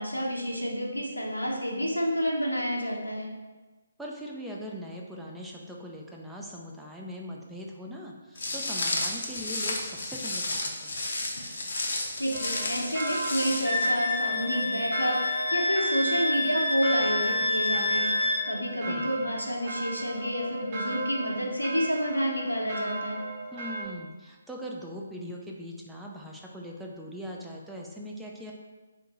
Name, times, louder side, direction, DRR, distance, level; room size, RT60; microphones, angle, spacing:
voice 1, 0.0-3.3 11.9-23.2, equal, 85° left, -1 dB, 0.8 m, -29 dB
voice 2, 4.0-11.0 18.8-19.2 23.5-28.5, equal, 5° right, -2 dB, 0.3 m, -41 dB
Walk footsteps, 8.4-13.9, left 2 dB, 50° left, 0.6 m, -32 dB
sound 1, 12.3-23.9, right 2 dB, 30° right, 0.9 m, -37 dB
Wind instrument woodwind instrument, 13.6-18.4, left 2 dB, 20° left, 0.8 m, -28 dB
3.5 x 2.5 x 4.1 m, 1.2 s
figure-of-eight pair, 140°, 0 cm